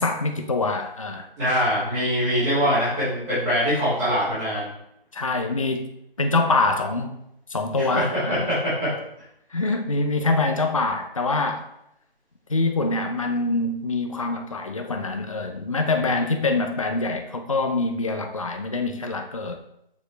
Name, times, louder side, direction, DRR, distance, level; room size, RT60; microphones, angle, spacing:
voice 1, 0.0-1.3 5.1-5.9 6.2-7.1 7.5-8.5 9.5-11.7 12.5-19.6, left 3 dB, 35° left, 6 dB, 0.5 m, -25 dB
voice 2, 1.4-4.7 7.8-8.9, equal, 5° right, -16 dB, 1.5 m, -23 dB
6.8 x 4.7 x 3.2 m, 0.78 s
figure-of-eight pair, 160°, 29 cm